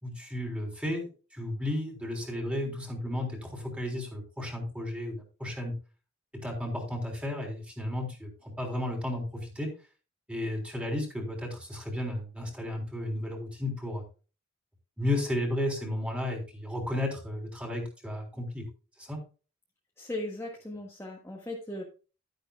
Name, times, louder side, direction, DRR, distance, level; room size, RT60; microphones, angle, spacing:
voice 1, 0.0-5.7 6.3-9.7 10.3-14.0 15.0-18.7 19.0-19.2, left 1 dB, 5° right, 1 dB, 3.5 m, -33 dB
voice 2, 20.0-21.8, left 1 dB, 10° left, -2 dB, 1.6 m, -37 dB
12.0 x 10.5 x 2.3 m, 0.34 s
head